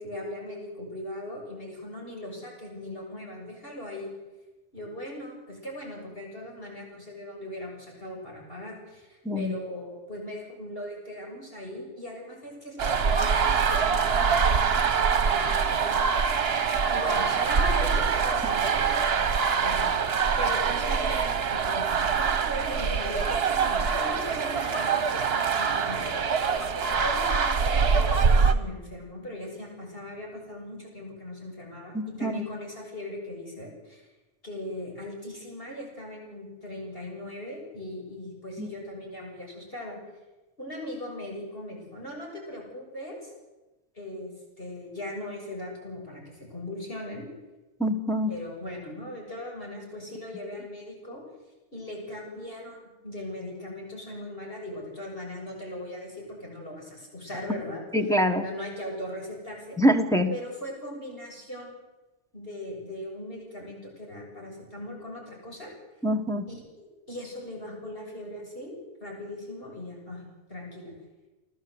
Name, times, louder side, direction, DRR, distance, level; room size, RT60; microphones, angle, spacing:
voice 1, 0.0-4.1 4.7-16.3 16.9-19.0 19.6-20.0 20.4-26.0 27.0-34.1 34.4-40.0 40.6-43.3 43.9-44.3 44.6-47.3 48.3-51.2 51.7-57.8 58.3-59.8 60.3-61.8 62.3-65.7 66.5-70.2 70.5-70.9, left 1 dB, 50° left, -1 dB, 7.3 m, -39 dB
voice 2, 9.2-9.6 31.9-32.4 38.6-38.7 47.8-48.4 57.9-58.5 59.8-60.3 66.0-66.4, equal, 5° left, 4 dB, 1.4 m, -24 dB
sound 1, 12.8-28.5, right 5 dB, 60° right, 1.3 m, -24 dB
29.0 x 13.5 x 8.0 m, 1.1 s
omnidirectional pair, 1.2 m